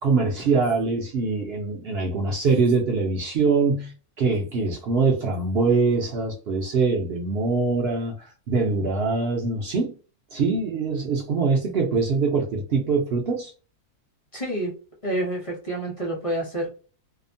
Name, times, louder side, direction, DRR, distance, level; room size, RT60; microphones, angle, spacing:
voice 1, 0.0-3.9 4.2-9.9 10.3-13.5, right 4 dB, 65° right, 0 dB, 0.6 m, -23 dB
voice 2, 14.3-14.7 15.0-16.7, right 1 dB, 30° left, -2 dB, 0.7 m, -28 dB
2.8 x 2.1 x 2.6 m, 0.36 s
omnidirectional pair, 1.6 m